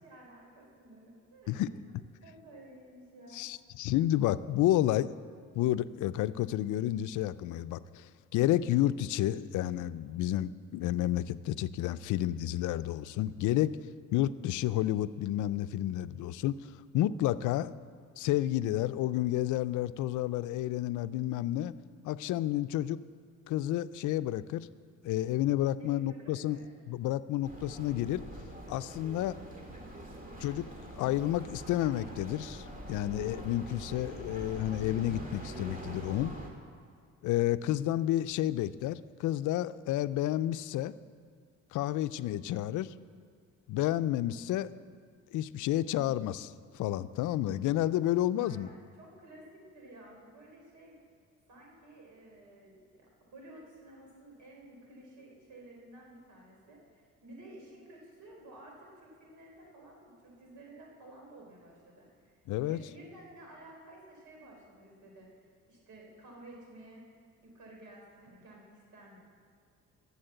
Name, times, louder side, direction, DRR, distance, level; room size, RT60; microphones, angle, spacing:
voice 1, 0.0-1.7 2.2-3.4 25.8-26.7 48.3-50.9 51.5-67.0 67.4-69.2, right 1 dB, 75° right, -1 dB, 3.9 m, -53 dB
voice 2, 3.3-5.1 5.5-13.7 14.1-17.7 18.2-21.7 22.0-23.0 23.5-24.7 25.0-26.6 26.9-28.2 28.7-29.4 30.4-30.7 31.0-36.3 37.2-40.9 41.7-42.9 43.7-44.7 45.3-48.7 62.5-62.8, left 13 dB, 80° left, 15 dB, 0.5 m, -30 dB
sound 1, 27.4-36.5, right 1 dB, 30° right, 2.1 m, -44 dB
12.5 x 7.3 x 7.9 m, 2.1 s
cardioid pair, 90°, 30 cm